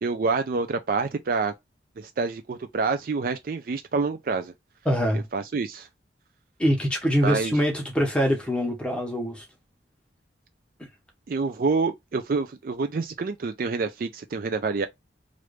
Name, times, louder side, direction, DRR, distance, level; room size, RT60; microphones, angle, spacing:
voice 1, 0.0-1.5 2.0-4.5 5.3-5.9 7.2-7.5 11.3-14.9, right 4 dB, 50° right, 0.4 m, -27 dB
voice 2, 4.8-5.3 6.6-9.4, equal, 5° left, 1.0 m, -24 dB
3.1 x 2.5 x 3.1 m
head